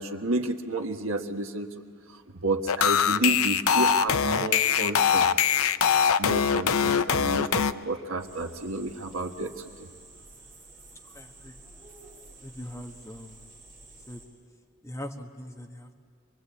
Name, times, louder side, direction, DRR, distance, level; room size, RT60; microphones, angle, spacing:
voice 1, 0.0-1.7 2.4-5.3 6.2-9.9, right 2 dB, 70° right, 4 dB, 1.5 m, -31 dB
sound 1, 2.7-7.7, left 7 dB, 75° left, 0.6 m, -22 dB
sound 2, 8.2-14.3, right 2 dB, 25° right, 6.8 m, -51 dB
voice 2, 11.1-11.6 12.4-13.5 14.1-14.2 14.8-15.9, left 1 dB, 15° left, 2 dB, 1.4 m, -41 dB
26.5 x 21.0 x 8.5 m, 2.2 s
head